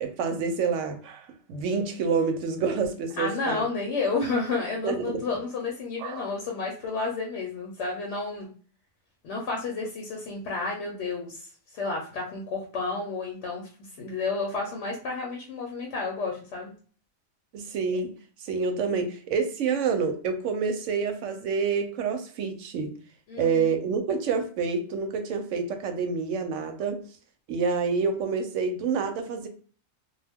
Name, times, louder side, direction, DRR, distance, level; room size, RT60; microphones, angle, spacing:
voice 1, 0.0-3.6 4.8-5.2 6.0-6.3 17.5-18.1 18.4-22.9 23.4-27.0 27.5-29.5, right 5 dB, 70° right, 6 dB, 0.9 m, -28 dB
voice 2, 3.2-8.5 9.2-11.5 11.7-13.7 14.0-16.7 23.3-23.7, left 3 dB, 65° left, -1 dB, 0.9 m, -31 dB
2.2 x 2.2 x 3.4 m, 0.43 s
omnidirectional pair, 1.4 m